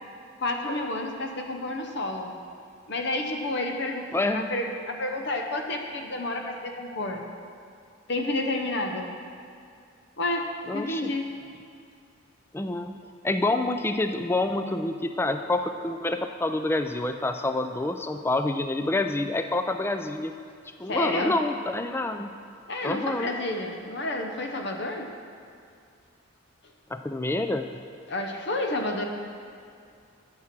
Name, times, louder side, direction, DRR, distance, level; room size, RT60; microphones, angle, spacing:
voice 1, 0.4-2.3 2.9-7.2 8.1-9.1 10.2-11.3 20.9-21.4 22.7-25.1 28.1-29.0, left 2 dB, 55° left, 3 dB, 0.8 m, -30 dB
voice 2, 4.1-4.5 10.7-11.1 12.5-13.0 13.2-20.3 20.8-22.3 22.8-23.3 26.9-27.7, left 2 dB, 10° left, 7 dB, 0.3 m, -27 dB
8.4 x 7.5 x 6.0 m, 2.4 s
head